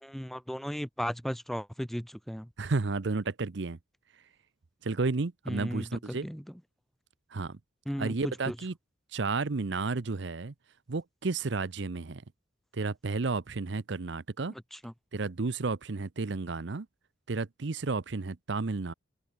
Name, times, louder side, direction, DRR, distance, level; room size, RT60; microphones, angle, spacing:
voice 1, 0.0-2.5 5.5-6.4 7.9-8.5 14.7-14.9, equal, ahead, 1.0 m, -36 dB
voice 2, 2.6-3.8 4.8-6.3 7.3-7.6 8.0-8.7 9.1-10.5 10.9-12.2 12.7-14.5 15.1-16.9 17.3-18.9, right 3 dB, 65° right, 0.7 m, -32 dB
open air
head